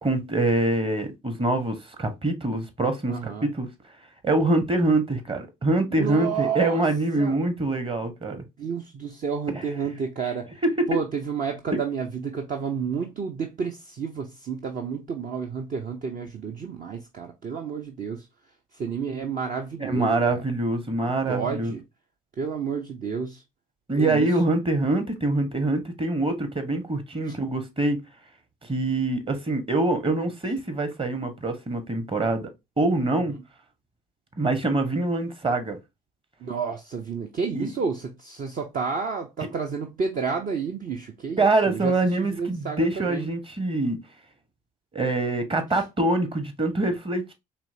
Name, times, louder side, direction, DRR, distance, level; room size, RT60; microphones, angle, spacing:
voice 1, 0.0-3.7 4.2-8.4 9.5-9.6 10.6-10.9 19.8-21.7 23.9-28.0 28.7-32.5 32.8-33.3 34.4-35.8 37.5-37.7 41.4-44.0 44.9-47.3, right 2 dB, 25° right, 1.2 m, -24 dB
voice 2, 3.1-3.5 5.9-6.8 7.2-7.4 8.6-10.5 10.9-18.3 18.7-20.4 21.3-21.8 22.4-23.4 23.9-24.3 27.3-27.4 33.1-33.2 36.4-43.3 45.7-45.8, right 6 dB, 45° right, 0.7 m, -30 dB
4.4 x 3.1 x 2.7 m
hypercardioid pair, 50°, 20 cm